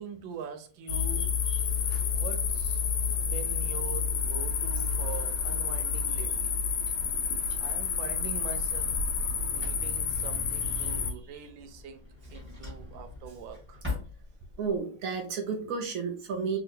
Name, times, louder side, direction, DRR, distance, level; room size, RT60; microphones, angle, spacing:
voice 1, 0.0-1.3 2.1-2.8 3.2-6.5 7.0-12.0 12.3-13.8 15.5-15.7, right 6 dB, 85° right, 1.3 m, -43 dB
sound 1, 0.9-11.1, left 6 dB, 70° left, 0.9 m, -29 dB
voice 2, 1.0-1.6 1.9-2.0 10.8-10.9 14.6-16.6, right 5 dB, 70° right, 0.8 m, -33 dB
Drawer open or close, 6.6-14.8, left 3 dB, 5° right, 1.2 m, -45 dB
3.2 x 2.9 x 2.6 m
omnidirectional pair, 2.1 m